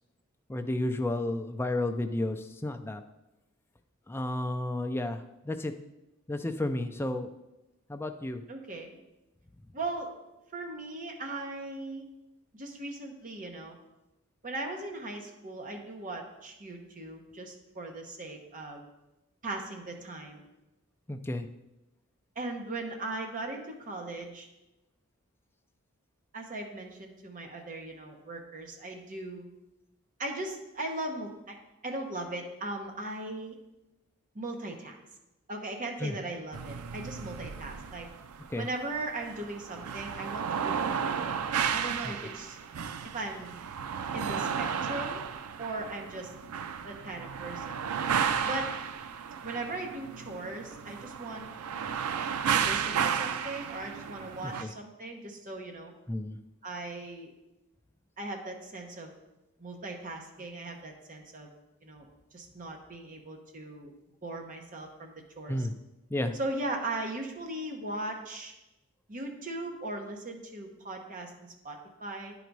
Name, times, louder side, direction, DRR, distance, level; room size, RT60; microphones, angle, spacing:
voice 1, 0.5-3.0 4.1-5.7 6.3-7.3 7.9-8.4 21.1-21.5 36.0-36.2 38.5-38.7 42.0-42.1 54.4-54.7 56.1-56.4 65.5-65.7 66.1-66.3, left 1 dB, 10° left, 6 dB, 0.4 m, -32 dB
voice 2, 8.5-9.0 9.7-10.1 10.5-12.1 12.5-13.8 14.4-18.8 19.4-20.4 22.4-24.5 26.3-29.5 30.2-31.6 31.8-33.6 34.3-35.0 35.5-38.1 38.6-41.4 41.7-42.6 43.1-43.5 44.1-45.2 45.6-46.3 46.8-47.8 48.4-48.7 49.4-51.4 52.5-55.9 56.6-57.3 58.2-59.1 59.6-61.5 61.8-62.1 62.3-63.9 64.2-65.6 66.3-68.5 69.1-72.3, right 2 dB, 35° right, 2 dB, 1.0 m, -38 dB
sound 1, 36.5-54.6, right 7 dB, 90° right, 0.4 m, -33 dB
9.9 x 4.0 x 4.6 m, 0.97 s
head